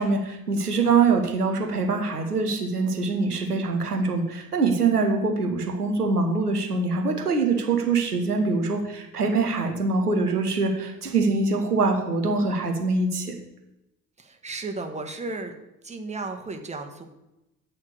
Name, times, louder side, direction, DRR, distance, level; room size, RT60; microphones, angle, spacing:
voice 1, 0.0-13.3, right 4 dB, 90° right, 3 dB, 0.8 m, -24 dB
voice 2, 14.2-15.5 15.8-17.0, right 3 dB, 15° right, 4 dB, 1.3 m, -34 dB
8.3 x 4.3 x 6.6 m, 0.93 s
figure-of-eight pair, 50°, 45 cm